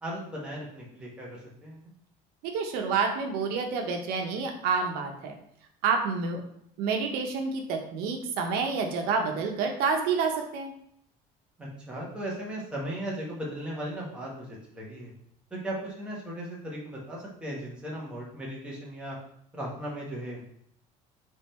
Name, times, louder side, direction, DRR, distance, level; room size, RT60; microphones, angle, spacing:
voice 1, 0.0-1.8 11.6-15.1 15.5-19.2 19.5-20.4, right 1 dB, 5° right, -5 dB, 1.1 m, -37 dB
voice 2, 2.4-5.3 5.8-6.4 6.8-10.7, right 5 dB, 80° right, 3 dB, 0.8 m, -28 dB
3.6 x 3.4 x 4.3 m, 0.70 s
cardioid pair, 175°, 16 cm